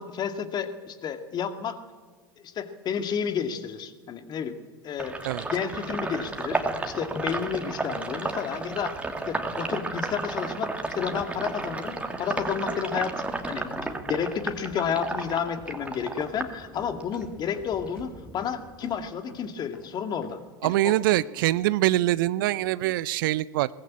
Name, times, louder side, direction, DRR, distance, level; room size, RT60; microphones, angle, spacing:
voice 1, 0.0-1.8 2.4-4.6 4.8-5.1 5.5-9.0 9.3-21.0, left 7 dB, 35° left, 8 dB, 2.2 m, -31 dB
Sink (filling or washing), 5.0-17.3 17.6-19.0, right 3 dB, 10° right, 2.7 m, -33 dB
sound 1, 11.1-12.3 12.6-13.4 13.7-17.3 17.5-18.1 18.4-18.5 18.8-18.9 19.3-19.5 19.7-19.9 20.2-20.8 21.1-21.7 21.9-22.0, left 3 dB, 70° left, 6.6 m, -48 dB
voice 2, 20.6-23.7, right 16 dB, 60° right, 19 dB, 0.6 m, -24 dB
22.5 x 19.5 x 8.5 m, 1.5 s
figure-of-eight pair, 80°, 13 cm